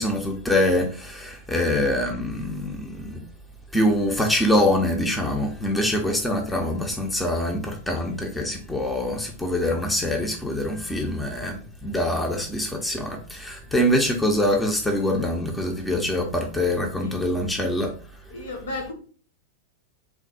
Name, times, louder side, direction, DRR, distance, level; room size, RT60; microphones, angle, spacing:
voice 1, 0.0-3.2 3.7-17.9, left 1 dB, 5° left, 0.6 m, -24 dB
voice 2, 18.3-18.9, left 2 dB, 65° left, 1.3 m, -34 dB
3.4 x 2.2 x 4.1 m
figure-of-eight pair, 95°, 0 cm